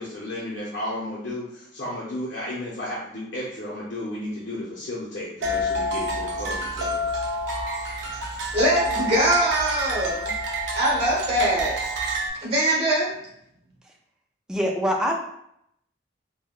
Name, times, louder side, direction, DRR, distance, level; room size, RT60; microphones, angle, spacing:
voice 1, 0.0-7.1, left 1 dB, 65° left, -7 dB, 0.7 m, -33 dB
sound 1, 5.4-12.3, right 1 dB, 70° right, 0.5 m, -28 dB
voice 2, 8.5-10.3 10.7-11.8 12.4-13.2, right 1 dB, 30° right, -4 dB, 1.1 m, -22 dB
voice 3, 14.5-15.2, equal, 5° right, 0 dB, 0.3 m, -23 dB
3.5 x 2.2 x 2.4 m, 0.73 s
head